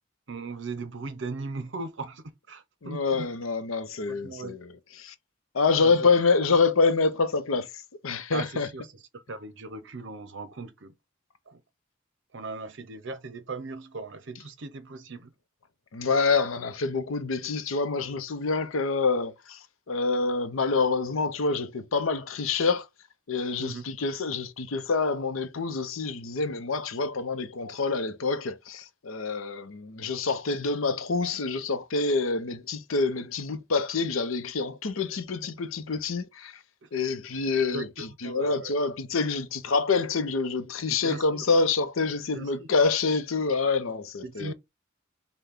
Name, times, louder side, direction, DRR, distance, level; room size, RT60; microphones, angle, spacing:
voice 1, 0.3-3.3 4.1-4.6 5.8-6.1 8.3-8.9 9.1-10.9 11.5-11.6 12.3-15.3 23.6-23.8 36.8-36.9 37.7-38.7 40.9-41.5 42.3-42.7 44.2-44.5, right 3 dB, 60° right, 0.7 m, -38 dB
voice 2, 2.8-5.1 5.5-7.7 8.0-8.7 15.9-19.6 19.9-22.9 23.3-36.5 36.9-44.5, left 4 dB, 90° left, 0.7 m, -27 dB
5.6 x 2.2 x 3.6 m
head